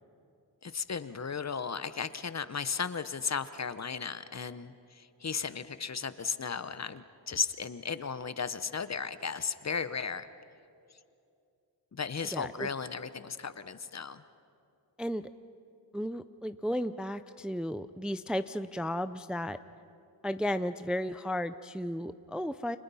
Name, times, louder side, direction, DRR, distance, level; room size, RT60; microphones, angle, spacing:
voice 1, 0.6-10.3 11.9-14.2, left 6 dB, 40° left, 13 dB, 0.9 m, -35 dB
voice 2, 12.3-12.7 15.0-15.3 15.9-19.6 20.2-22.8, equal, ahead, 11 dB, 0.5 m, -34 dB
29.5 x 25.5 x 5.6 m, 2.6 s
wide cardioid pair, 90°, 42 cm